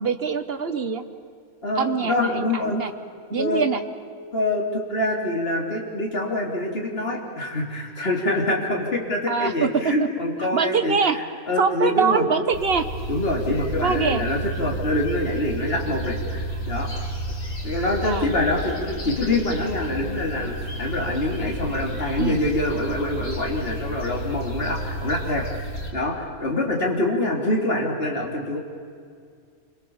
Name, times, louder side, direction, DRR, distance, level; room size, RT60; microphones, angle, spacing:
voice 1, 0.0-1.0 1.8-2.9 3.3-3.8 9.3-9.9 10.5-11.2 11.6-12.9 13.8-14.2 18.0-18.3 22.2-22.4, right 5 dB, 45° right, 9 dB, 1.4 m, -23 dB
voice 2, 1.6-2.8 3.4-3.6 4.3-12.2 13.1-16.9 17.6-20.5 20.8-25.5 25.9-28.6, left 1 dB, 40° left, -1 dB, 3.6 m, -25 dB
sound 1, 12.5-25.9, right 1 dB, 70° left, 3.9 m, -31 dB
28.5 x 24.5 x 7.2 m, 2.2 s
omnidirectional pair, 1.6 m